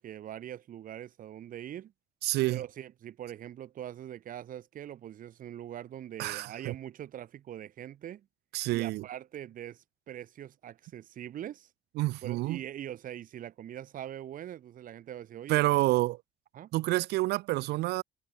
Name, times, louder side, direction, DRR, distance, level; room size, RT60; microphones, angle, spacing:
voice 1, 0.0-1.9 2.4-8.3 8.7-11.7 12.2-15.6 16.5-16.7, right 11 dB, 55° right, 1.4 m, -42 dB
voice 2, 2.2-2.6 6.2-6.7 8.5-9.0 12.0-12.6 15.5-16.2 16.7-18.0, right 19 dB, 80° right, 0.6 m, -28 dB
cardioid pair, 110°, 17 cm